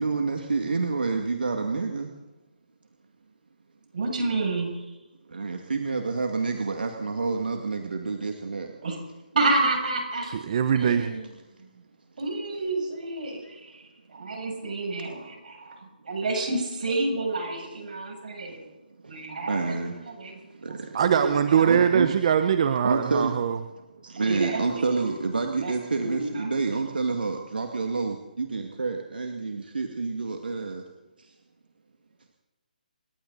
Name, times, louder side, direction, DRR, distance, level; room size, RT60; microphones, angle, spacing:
voice 1, 0.0-2.1 4.7-4.9 5.3-8.7 13.2-13.9 17.6-17.7 18.4-18.6 19.0-21.0 21.6-22.2 22.8-23.3 23.8-30.8 31.2-31.3, right 4 dB, 80° right, 3 dB, 2.1 m, -29 dB
voice 2, 3.9-4.7 8.8-9.0 9.3-10.3 10.8-11.2 12.2-13.4 14.1-15.7 16.1-18.7 19.1-20.4 20.7-20.8 21.0-21.7 24.2-24.6 24.9-25.1 25.6-25.7 26.0-26.5, right 2 dB, 60° right, 1 dB, 7.1 m, -29 dB
voice 3, 10.2-11.1 20.9-23.6, right 8 dB, 40° right, 9 dB, 0.9 m, -22 dB
28.0 x 12.0 x 4.1 m, 1.1 s
hypercardioid pair, 160°, 5 cm